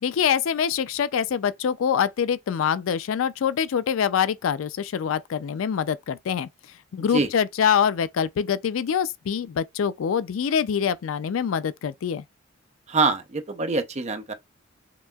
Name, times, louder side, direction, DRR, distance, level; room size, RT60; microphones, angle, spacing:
voice 1, 0.0-6.5 6.9-12.2, left 7 dB, 90° left, 0.4 m, -25 dB
voice 2, 12.9-14.3, right 3 dB, 35° right, 0.7 m, -24 dB
5.9 x 2.7 x 2.3 m
head